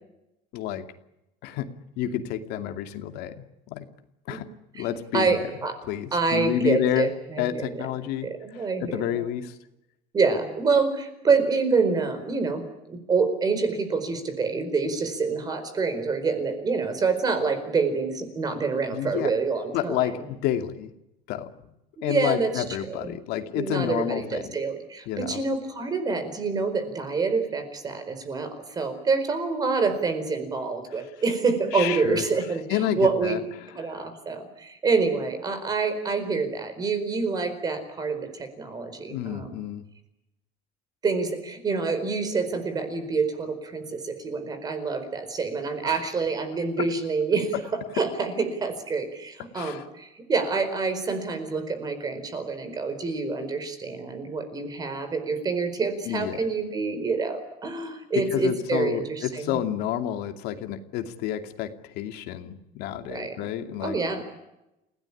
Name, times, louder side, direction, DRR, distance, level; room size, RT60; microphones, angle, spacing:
voice 1, 0.5-0.8 1.4-1.7 2.0-3.9 4.3-4.5 4.7-5.5 5.9-7.1 7.4-8.3 8.8-9.6 18.9-19.3 19.7-20.9 21.3-21.5 22.0-24.5 25.1-25.4 31.7-32.2 32.7-33.4 39.1-39.8 45.8-46.0 49.5-49.8 56.1-56.4 58.1-64.0, left 11 dB, 75° left, 6 dB, 2.5 m, -29 dB
voice 2, 5.1-5.8 6.1-7.8 8.2-9.2 10.1-12.6 12.9-20.1 22.0-23.1 23.5-39.6 41.0-47.5 48.0-59.6 63.1-63.4 63.8-64.3, right 4 dB, 25° right, 9 dB, 4.5 m, -27 dB
29.5 x 17.5 x 10.0 m, 0.89 s
cardioid pair, 175°, 17 cm